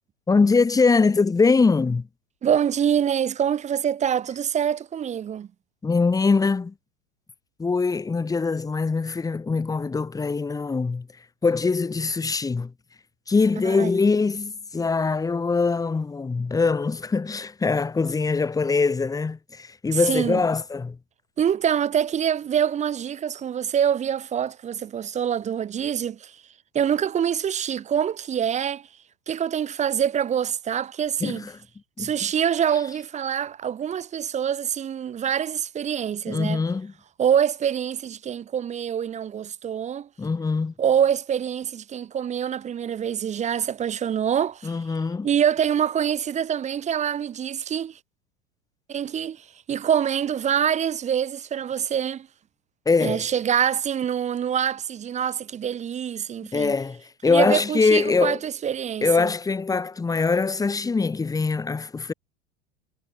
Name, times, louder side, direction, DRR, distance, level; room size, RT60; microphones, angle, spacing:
voice 1, 0.3-2.1 5.8-6.7 7.6-11.1 11.4-12.7 13.3-21.0 31.2-31.5 32.0-32.1 36.3-36.9 40.2-40.7 44.6-45.3 52.9-53.3 56.5-58.4 59.0-62.1, left 4 dB, 10° left, 1.0 m, -23 dB
voice 2, 2.4-5.5 13.6-13.9 19.9-20.4 21.4-26.4 26.7-28.9 29.3-31.4 32.0-36.6 37.2-40.1 40.8-44.8 45.2-48.0 48.9-52.3 53.0-56.8 57.2-59.3, right 8 dB, 20° right, 0.7 m, -25 dB
figure-of-eight pair, 85°, 37 cm